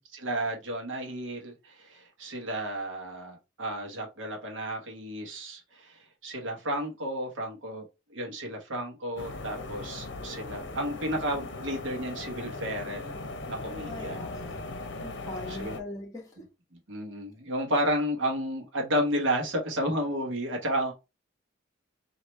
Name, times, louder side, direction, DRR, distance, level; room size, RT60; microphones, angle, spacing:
voice 1, 0.0-7.8 8.1-13.2 13.5-14.3 15.5-15.8 16.9-20.9, equal, 80° right, 1.2 m, -32 dB
sound 1, 9.2-15.8, left 2 dB, 65° left, 0.8 m, -39 dB
voice 2, 13.9-14.6 15.0-16.4, left 1 dB, 20° left, 1.3 m, -41 dB
3.2 x 2.8 x 4.3 m
head